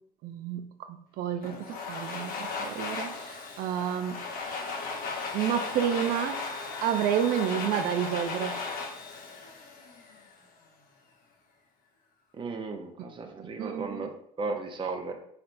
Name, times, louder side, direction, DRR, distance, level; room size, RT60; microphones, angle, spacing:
voice 1, 0.2-4.2 5.3-6.5 6.8-8.6 13.4-14.2, right 9 dB, 80° right, 0.4 m, -30 dB
Domestic sounds home sounds, 1.4-10.3, left 4 dB, 70° left, 0.8 m, -36 dB
voice 2, 12.4-14.1 14.4-15.1, right 3 dB, 35° right, 0.6 m, -35 dB
4.1 x 3.3 x 2.6 m
cardioid pair, 85°, 15 cm